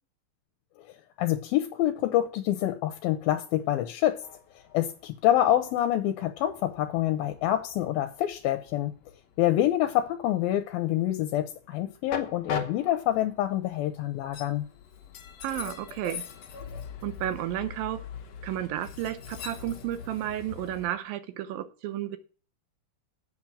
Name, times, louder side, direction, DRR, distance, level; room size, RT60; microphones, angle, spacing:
voice 1, 1.2-4.2 4.7-8.9 9.4-14.6, left 13 dB, 80° left, 2.5 m, -26 dB
Train, 4.2-20.9, left 7 dB, 65° left, 1.7 m, -42 dB
voice 2, 15.4-16.2 17.0-18.0 18.4-22.2, right 12 dB, 75° right, 2.5 m, -32 dB
8.2 x 6.0 x 7.3 m
omnidirectional pair, 4.3 m